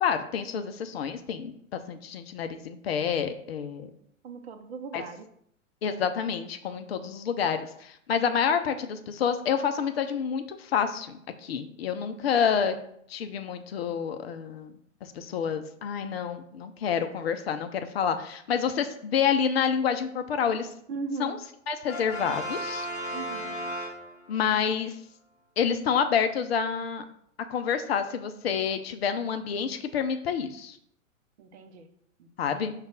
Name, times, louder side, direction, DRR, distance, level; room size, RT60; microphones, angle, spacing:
voice 1, 0.0-3.9 4.9-5.0 5.8-12.8 13.1-14.7 15.0-20.7 21.2-21.4 21.7-22.9 24.3-25.0 25.6-27.0 27.5-30.8 32.4-32.7, left 7 dB, 50° left, 9 dB, 0.5 m, -28 dB
voice 2, 4.2-5.3 20.9-21.4 23.1-23.6 31.4-31.9 32.2-32.5, right 4 dB, 55° right, 7 dB, 0.6 m, -38 dB
Brass instrument, 21.9-24.5, equal, 15° left, 0.8 m, -35 dB
5.0 x 2.3 x 3.7 m, 0.68 s
figure-of-eight pair, 110°, 40 cm